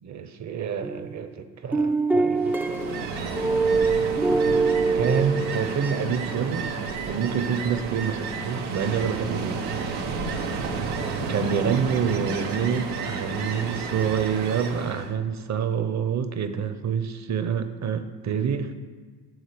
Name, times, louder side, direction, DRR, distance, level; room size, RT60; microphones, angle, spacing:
voice 1, 0.0-2.8 4.9-6.7 7.1-9.6 11.3-18.8, right 7 dB, 35° right, 9 dB, 0.8 m, -27 dB
sound 1, 0.8-1.3 1.7-6.0, right 4 dB, 5° right, 0.4 m, -24 dB
Ocean, 2.3-15.1, right 4 dB, 85° right, 0.9 m, -31 dB
8.0 x 3.9 x 5.1 m, 1.5 s
hypercardioid pair, 55°, 48 cm